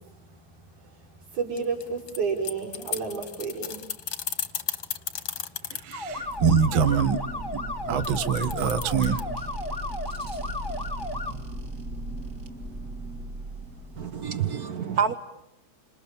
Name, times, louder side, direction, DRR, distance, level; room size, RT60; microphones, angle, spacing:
voice 1, 0.0-6.4 9.6-9.9 10.3-12.9 13.3-14.5 14.9-15.0, right 5 dB, 85° right, -4 dB, 6.5 m, -36 dB
sound 1, 1.6-5.9 8.0-9.2, left 9 dB, 50° left, 1.6 m, -33 dB
voice 2, 5.7-7.2 7.5-7.6 7.9-9.2, right 6 dB, 45° right, 10 dB, 2.1 m, -24 dB
sound 2, 5.9-11.3, left 2 dB, 30° left, 0.4 m, -34 dB
sound 3, 6.1-14.6, right 1 dB, 30° right, 2.0 m, -37 dB
voice 3, 14.0-15.1, right 7 dB, 65° right, 11 dB, 0.9 m, -27 dB
29.0 x 27.0 x 7.3 m, 0.84 s
omnidirectional pair, 3.4 m